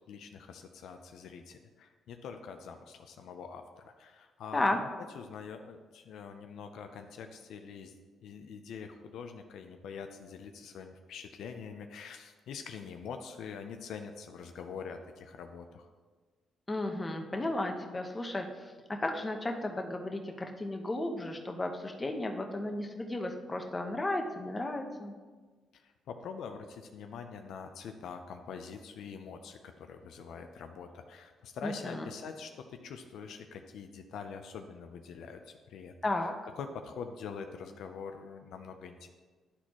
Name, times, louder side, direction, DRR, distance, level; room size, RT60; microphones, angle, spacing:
voice 1, 0.1-4.9 5.1-15.9 25.7-35.4 35.7-35.9 36.6-39.1, left 6 dB, 75° left, 6 dB, 0.5 m, -44 dB
voice 2, 16.7-25.1 31.6-32.1 36.0-36.3, left 1 dB, 20° left, 4 dB, 0.8 m, -34 dB
11.0 x 4.2 x 3.0 m, 1.4 s
cardioid pair, 90°, 0 cm